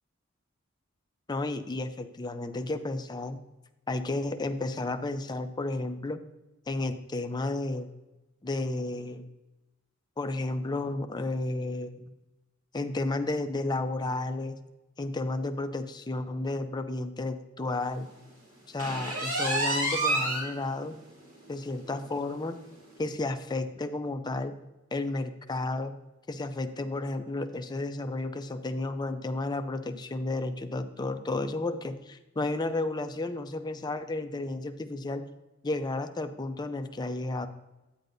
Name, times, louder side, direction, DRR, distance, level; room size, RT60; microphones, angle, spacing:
voice 1, 1.3-3.4 3.9-6.2 6.7-7.9 8.4-9.2 10.2-12.1 12.7-14.6 15.0-18.1 18.7-21.0 21.5-22.6 23.0-24.5 24.9-25.9 26.3-35.2 35.6-37.5, left 2 dB, 20° left, 8 dB, 0.5 m, -32 dB
sound 1, 18.8-20.5 20.9-21.0 21.5-21.6 22.0-22.1 23.0-23.1, right 2 dB, 75° right, 2.7 m, -28 dB
9.5 x 9.0 x 2.6 m, 1.0 s
head